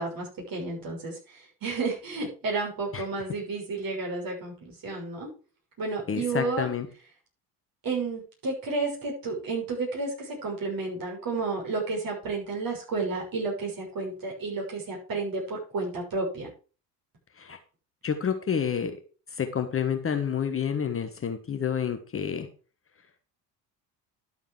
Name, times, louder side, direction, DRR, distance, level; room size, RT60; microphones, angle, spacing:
voice 1, 0.0-5.3 5.8-6.7 7.8-16.5, right 3 dB, 45° right, -1 dB, 6.4 m, -31 dB
voice 2, 6.1-6.9 17.4-17.6 18.0-18.9 19.3-22.5, left 7 dB, 25° left, 8 dB, 1.3 m, -29 dB
11.5 x 7.2 x 4.7 m, 0.35 s
figure-of-eight pair, 55°, 49 cm